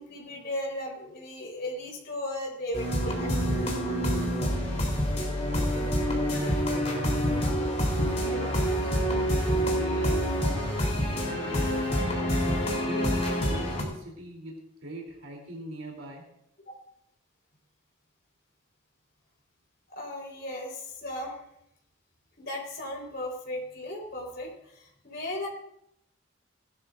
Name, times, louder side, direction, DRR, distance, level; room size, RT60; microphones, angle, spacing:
voice 1, 0.0-3.7 16.7-16.8 19.9-21.4 22.4-25.5, left 1 dB, 50° left, -1 dB, 4.2 m, -36 dB
sound 1, 2.7-13.8, equal, 35° left, 3.4 m, -27 dB
voice 2, 5.5-6.0 6.4-7.5 7.9-12.0 12.7-14.5 14.8-16.2, right 1 dB, 85° right, 0 dB, 3.1 m, -41 dB
19.0 x 12.0 x 2.5 m, 0.74 s
head